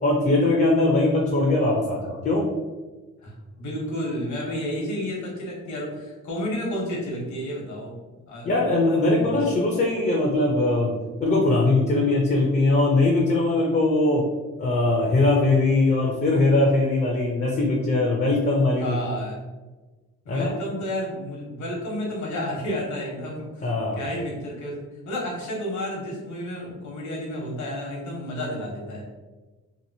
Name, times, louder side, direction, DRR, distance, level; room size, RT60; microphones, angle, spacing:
voice 1, 0.0-2.4 8.4-10.9 11.2-14.2 14.6-19.0 20.3-20.5 23.6-24.0, left 2 dB, 35° left, -1 dB, 0.6 m, -21 dB
voice 2, 3.2-8.0 8.3-8.5 9.2-9.4 18.8-19.4 20.2-23.7 24.0-29.0, equal, 70° left, -2 dB, 1.1 m, -31 dB
2.9 x 2.5 x 2.7 m, 1.2 s
cardioid pair, 90°, 30 cm